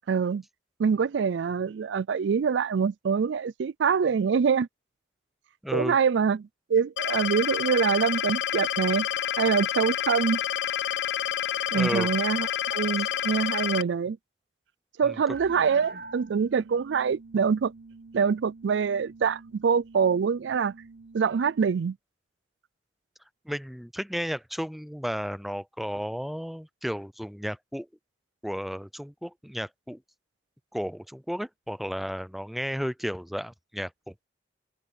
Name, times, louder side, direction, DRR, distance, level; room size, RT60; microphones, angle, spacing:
voice 1, 0.1-0.4 0.8-4.7 5.7-9.1 9.4-10.4 11.7-14.2 15.0-17.7 18.1-20.7 21.1-22.0, right 6 dB, 80° right, 0.4 m, -25 dB
voice 2, 5.6-6.0 11.7-12.1 13.0-13.1 15.1-15.2 23.5-27.9 28.4-30.0 30.7-34.3, equal, ahead, 0.5 m, -33 dB
sound 1, 7.0-13.8, left 10 dB, 70° left, 0.3 m, -29 dB
sound 2, 15.3-21.6, right 3 dB, 55° right, 1.1 m, -46 dB
head